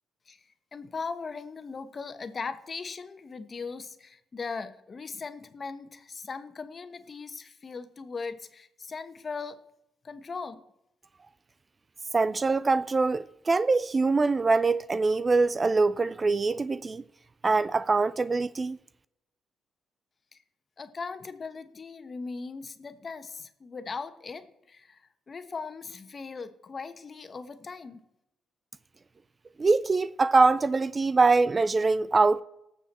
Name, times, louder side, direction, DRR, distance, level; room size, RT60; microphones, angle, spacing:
voice 1, 0.7-9.6 10.0-10.6 20.8-25.0 25.3-28.0, left 4 dB, 35° left, 1.2 m, -39 dB
voice 2, 12.1-17.0 17.4-18.8 29.6-32.4, right 3 dB, 30° right, 0.4 m, -23 dB
18.5 x 7.1 x 4.3 m
cardioid pair, 90°, 0 cm